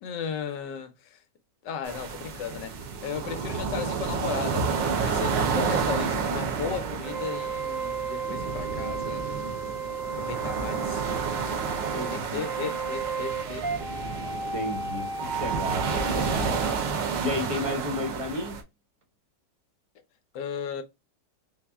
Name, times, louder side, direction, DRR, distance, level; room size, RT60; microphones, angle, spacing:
voice 1, 0.0-1.2 1.6-9.2 10.2-11.2 12.1-13.7 20.3-20.8, left 7 dB, 70° left, 1.2 m, -35 dB
sound 1, 1.8-18.6, right 5 dB, 75° right, 1.4 m, -30 dB
sound 2, 6.6-17.2, right 5 dB, 60° right, 1.0 m, -34 dB
voice 2, 11.9-12.4 14.5-16.6 17.2-18.6, left 1 dB, 30° right, 0.6 m, -33 dB
4.2 x 2.1 x 3.4 m
omnidirectional pair, 2.0 m